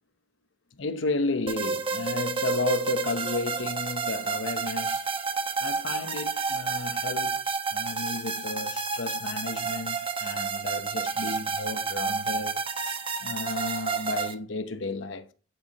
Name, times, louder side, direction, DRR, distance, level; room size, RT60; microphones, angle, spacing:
voice 1, 0.7-5.1 5.6-12.6 13.2-15.3, left 3 dB, 75° left, 0.9 m, -33 dB
sound 1, 1.5-14.3, right 5 dB, 30° right, 1.0 m, -30 dB
10.0 x 4.7 x 5.3 m
head